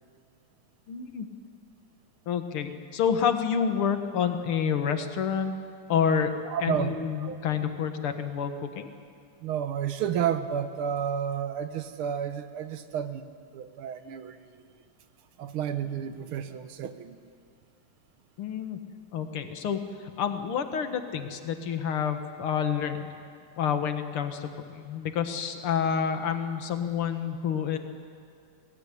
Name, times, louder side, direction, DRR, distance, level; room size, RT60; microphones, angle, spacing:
voice 1, 0.9-1.3 2.3-5.5 5.9-6.3 6.6-8.9 18.4-18.8 19.1-19.8 20.2-23.1 23.6-27.8, left 7 dB, 85° left, 7 dB, 2.4 m, -28 dB
voice 2, 6.5-7.4 9.4-14.4 15.4-17.2, right 8 dB, 80° right, 11 dB, 1.9 m, -31 dB
22.5 x 17.5 x 9.9 m, 2.2 s
omnidirectional pair, 2.3 m